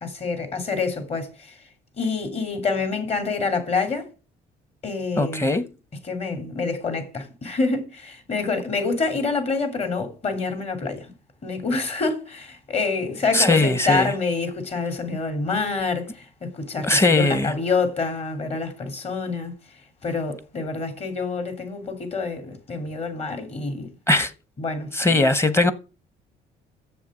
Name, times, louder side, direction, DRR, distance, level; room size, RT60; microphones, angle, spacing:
voice 1, 0.0-1.6 2.0-4.1 4.8-5.5 6.0-11.1 11.4-19.5 20.0-23.9 24.6-25.2, left 4 dB, 40° left, 3.3 m, -27 dB
voice 2, 5.2-5.6 13.3-14.1 16.8-17.5 24.1-24.3 24.9-25.7, left 2 dB, 15° left, 1.2 m, -19 dB
7.7 x 7.1 x 7.5 m
cardioid pair, 110°, 17 cm